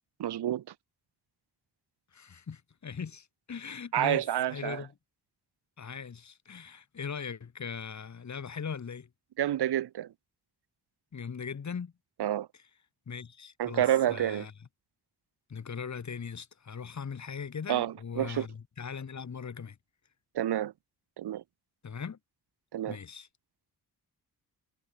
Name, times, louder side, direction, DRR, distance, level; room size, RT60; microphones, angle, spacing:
voice 1, 0.2-0.6 3.9-4.8 9.4-10.1 12.2-12.5 13.6-14.5 17.7-18.5 20.3-20.7 21.2-21.4 22.7-23.0, right 11 dB, 90° right, 1.1 m, -29 dB
voice 2, 2.1-4.2 4.5-4.9 5.8-9.1 11.1-11.9 13.1-14.5 15.5-19.8 21.8-22.2 22.9-23.3, left 6 dB, 45° left, 6.6 m, -39 dB
wide cardioid pair, 175°, 39 cm